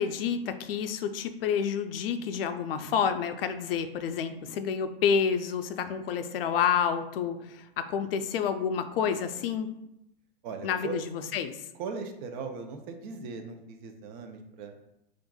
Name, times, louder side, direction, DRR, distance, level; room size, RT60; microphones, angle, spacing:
voice 1, 0.0-9.7 10.6-11.6, left 7 dB, 70° left, 9 dB, 0.4 m, -29 dB
voice 2, 10.4-11.0 11.8-14.7, right 5 dB, 50° right, 5 dB, 0.6 m, -39 dB
4.5 x 2.5 x 2.3 m, 0.85 s
hypercardioid pair, 115°, 30 cm